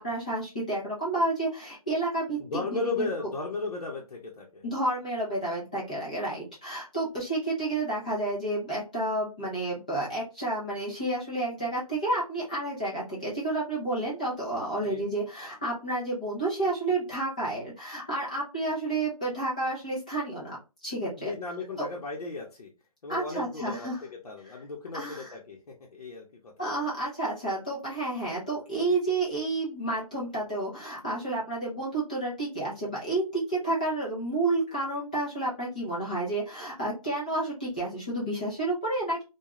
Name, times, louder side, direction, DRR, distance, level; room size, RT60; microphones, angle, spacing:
voice 1, 0.0-3.1 4.6-20.6 20.8-21.3 21.8-21.9 23.1-24.0 24.4-24.5 24.9-25.3 26.6-39.2, right 2 dB, 10° left, -7 dB, 0.5 m, -30 dB
voice 2, 2.4-4.6 14.7-15.1 21.2-22.7 23.0-23.9 24.2-26.7, left 3 dB, 80° left, -2 dB, 0.8 m, -35 dB
2.3 x 2.2 x 3.0 m, 0.29 s
hypercardioid pair, 170°, 19 cm